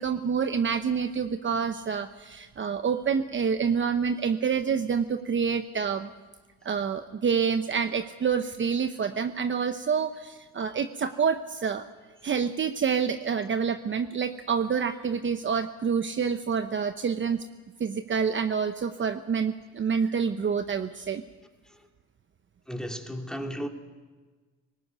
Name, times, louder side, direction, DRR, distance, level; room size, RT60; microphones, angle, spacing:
voice 1, 0.0-6.1 6.6-11.8 12.2-17.4 17.8-21.2, right 6 dB, 40° right, 9 dB, 0.9 m, -27 dB
voice 2, 22.7-23.7, equal, ahead, 3 dB, 2.6 m, -34 dB
19.0 x 19.0 x 9.4 m, 1.3 s
cardioid pair, 90°, 30 cm